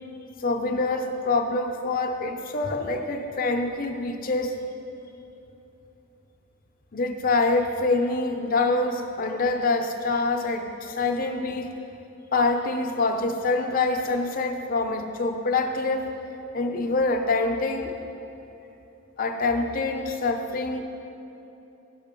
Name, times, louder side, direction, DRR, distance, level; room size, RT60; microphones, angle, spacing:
voice 1, 0.4-4.6 6.9-11.7 12.3-16.1 16.5-17.9 19.2-20.8, left 3 dB, 40° left, 4 dB, 0.7 m, -25 dB
11.0 x 6.3 x 5.2 m, 2.9 s
head